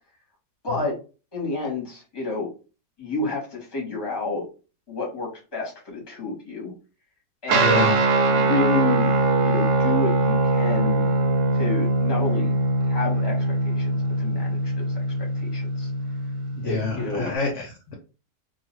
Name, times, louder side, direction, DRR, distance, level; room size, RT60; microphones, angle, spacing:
voice 1, 0.6-0.9 1.3-2.5 3.0-4.4 4.9-6.7 7.4-9.1 9.4-11.1 11.5-12.5 12.9-15.9 16.6-17.3, left 3 dB, 20° left, -1 dB, 0.8 m, -30 dB
voice 2, 7.5-8.0 16.6-17.9, left 3 dB, 65° left, 1 dB, 0.8 m, -27 dB
Guitar, 7.5-17.3, right 2 dB, 70° right, 0.9 m, -22 dB
2.4 x 2.3 x 3.0 m, 0.33 s
omnidirectional pair, 1.5 m